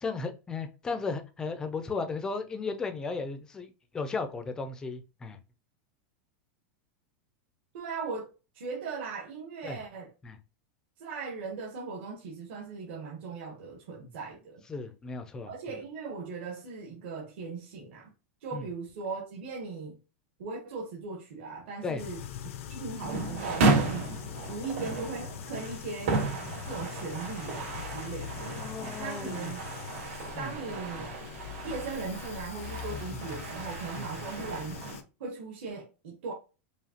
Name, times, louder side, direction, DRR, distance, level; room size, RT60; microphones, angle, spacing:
voice 1, 0.0-5.4 9.6-9.8 10.2-10.4 14.7-15.8 18.5-18.6 21.8-22.0 28.6-29.5 30.3-30.5 32.9-33.4 34.0-34.1, left 4 dB, 10° left, 0.4 m, -35 dB
voice 2, 7.7-8.3 8.5-10.1 11.0-14.6 15.5-18.1 18.4-20.0 20.4-22.2 22.7-24.1 24.5-26.2 26.6-28.6 29.0-29.6 30.4-31.1 31.6-34.8 35.2-36.3, right 4 dB, 55° right, 1.1 m, -38 dB
sound 1, 22.0-35.0, left 9 dB, 75° left, 0.6 m, -42 dB
sound 2, 23.0-35.0, right 3 dB, 70° right, 2.2 m, -33 dB
4.9 x 2.7 x 2.8 m
supercardioid pair, 175°, 7 cm